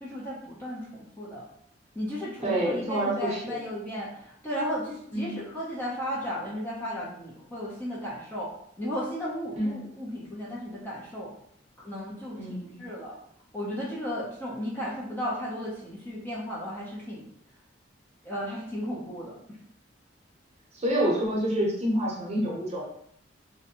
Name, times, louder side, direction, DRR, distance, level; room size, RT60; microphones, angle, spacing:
voice 1, 0.0-1.4 2.0-4.1 4.4-8.5 8.8-11.3 11.8-13.1 13.5-17.2 18.2-19.4, equal, 10° left, -6 dB, 0.5 m, -34 dB
voice 2, 2.4-3.6 5.1-5.4 9.6-9.8 12.3-12.8 20.7-22.9, right 1 dB, 35° right, -4 dB, 0.8 m, -28 dB
2.6 x 2.1 x 2.8 m, 0.67 s
head